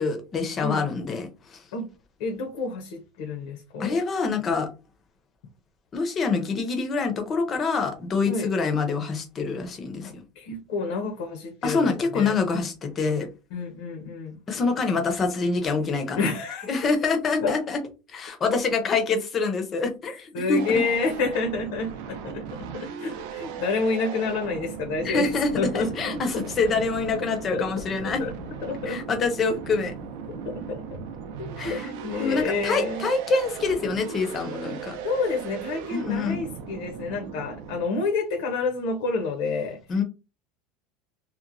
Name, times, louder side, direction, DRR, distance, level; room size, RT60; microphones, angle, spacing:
voice 1, 0.0-1.6 3.8-4.7 5.9-10.2 11.6-13.3 14.5-16.3 16.7-17.8 18.1-20.6 25.0-28.2 28.9-30.0 31.6-31.9 32.2-35.0 35.9-36.4 39.9-40.0, left 4 dB, 20° left, 6 dB, 0.5 m, -26 dB
voice 2, 2.2-4.0 8.2-8.5 10.4-12.3 13.5-14.4 16.2-16.8 17.4-17.5 20.3-22.4 22.7-25.9 27.5-27.6 28.0-28.3 28.6-29.0 30.3-30.8 31.4-33.1 35.0-40.0, left 4 dB, 75° left, 3 dB, 0.7 m, -29 dB
sound 1, 20.6-37.9, right 7 dB, 65° right, 0.4 m, -37 dB
2.9 x 2.1 x 2.5 m, 0.29 s
cardioid pair, 170°, 0 cm